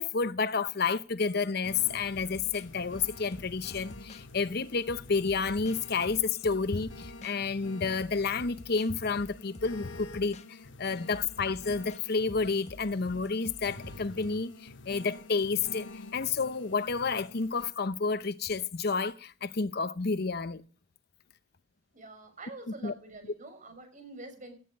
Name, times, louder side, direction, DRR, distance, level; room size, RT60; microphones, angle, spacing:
voice 1, 0.0-20.6 22.8-22.9, left 4 dB, 60° left, 0.8 m, -30 dB
organ ic, 1.6-17.6, left 2 dB, 85° left, 1.5 m, -48 dB
sound 1, 2.1-4.3 4.9-7.4 8.0-8.9 9.2-10.5 11.1-14.3, left 1 dB, 35° left, 1.2 m, -49 dB
voice 2, 21.9-24.5, right 2 dB, 45° right, 6.0 m, -46 dB
18.5 x 10.5 x 5.4 m
head